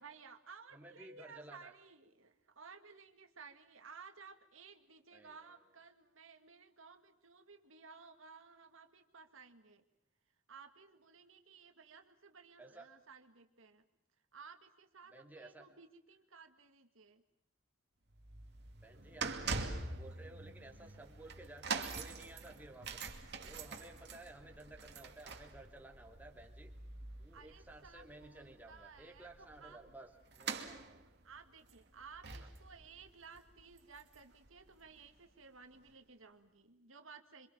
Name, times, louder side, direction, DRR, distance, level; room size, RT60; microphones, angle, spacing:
voice 1, 0.0-9.8 10.5-13.8 14.3-17.2 27.3-29.9 31.2-37.5, right 5 dB, 75° right, 7 dB, 2.1 m, -57 dB
voice 2, 0.7-1.7 5.1-5.6 12.6-12.9 15.1-15.7 18.8-26.7 27.2-31.0 32.4-32.5, right 2 dB, 10° right, 1 dB, 2.7 m, -55 dB
sound 1, 18.1-34.5 34.7-35.0 35.8-35.9, right 4 dB, 55° right, 2.5 m, -45 dB
27.5 x 25.0 x 7.3 m, 0.76 s
head